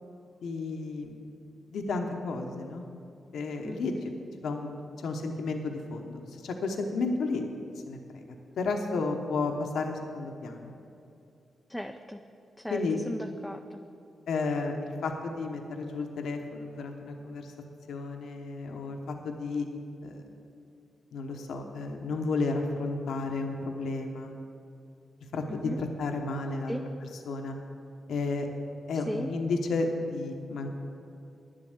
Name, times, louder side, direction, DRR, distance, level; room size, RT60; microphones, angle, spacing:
voice 1, 0.4-1.1 1.7-2.9 3.3-3.9 4.4-7.4 7.9-8.2 8.6-10.7 12.7-13.0 14.3-17.5 17.9-19.6 20.0-20.2 21.1-24.3 25.3-26.7 27.3-27.6 28.1-28.5 28.9-30.7, left 3 dB, 80° left, 3 dB, 0.9 m, -32 dB
voice 2, 3.6-4.0 11.7-12.2 12.6-13.8 25.5-25.8 26.7-26.8 29.1-29.3, left 1 dB, 5° left, 5 dB, 0.5 m, -37 dB
9.8 x 7.6 x 8.1 m, 2.6 s
cardioid pair, 60°, 0 cm